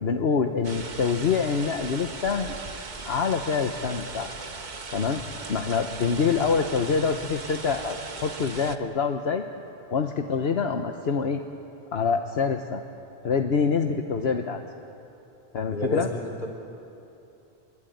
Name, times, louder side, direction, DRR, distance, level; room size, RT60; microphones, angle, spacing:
voice 1, 0.0-2.5 3.0-4.3 4.9-5.2 5.5-9.4 9.9-11.4 11.9-12.8 13.2-14.6 15.5-16.1, left 5 dB, 80° left, 5 dB, 1.4 m, -25 dB
sound 1, 0.6-8.8, right 4 dB, 45° right, 1.3 m, -38 dB
voice 2, 15.7-16.5, left 1 dB, 50° left, 2 dB, 4.2 m, -31 dB
27.5 x 22.5 x 9.4 m, 2.8 s
omnidirectional pair, 1.0 m